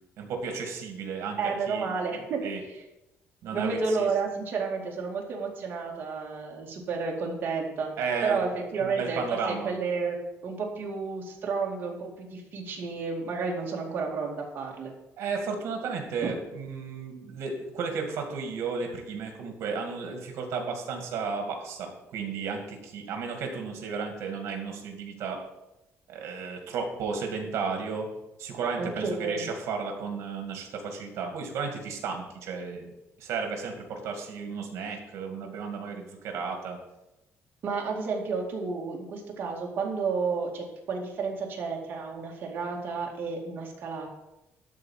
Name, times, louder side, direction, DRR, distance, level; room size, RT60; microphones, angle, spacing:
voice 1, 0.2-1.4 1.7-1.9 2.4-2.6 3.4-4.1 8.0-8.4 8.8-9.7 15.2-25.4 26.1-28.1 28.4-32.9 33.2-36.8, right 5 dB, 70° right, 4 dB, 2.3 m, -33 dB
voice 2, 1.4-2.6 3.5-7.9 8.2-10.2 10.4-14.9 16.2-16.3 28.8-29.5 37.6-44.1, right 4 dB, 45° right, -1 dB, 2.3 m, -31 dB
12.5 x 4.3 x 7.4 m, 0.94 s
cardioid pair, 170°, 5 cm